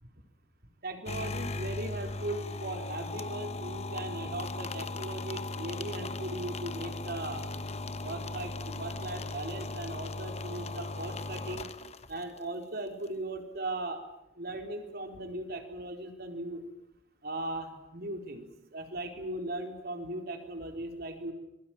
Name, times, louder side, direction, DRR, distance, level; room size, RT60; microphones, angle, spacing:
voice 1, 0.8-7.5 8.0-11.7 12.1-14.0 14.4-16.7 17.2-21.3, right 2 dB, 55° right, 5 dB, 4.2 m, -38 dB
sound 1, 1.0-12.4, left 2 dB, 35° left, 1.2 m, -38 dB
26.5 x 22.5 x 9.1 m, 0.86 s
head